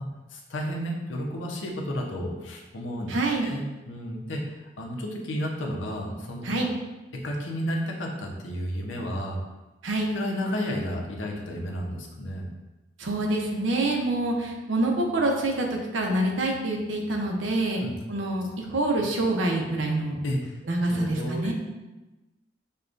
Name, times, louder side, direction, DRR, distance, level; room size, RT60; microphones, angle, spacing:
voice 1, 0.3-3.1 3.4-4.4 4.8-6.4 7.2-9.4 10.1-12.5 17.8-17.9 20.2-20.5 20.9-21.5, equal, 85° left, 0 dB, 0.7 m, -32 dB
voice 2, 3.1-3.5 6.4-6.7 9.8-10.1 13.0-17.8 18.1-20.2 20.7-21.5, right 2 dB, 85° right, 1 dB, 0.7 m, -26 dB
6.5 x 2.3 x 2.5 m, 1.1 s
head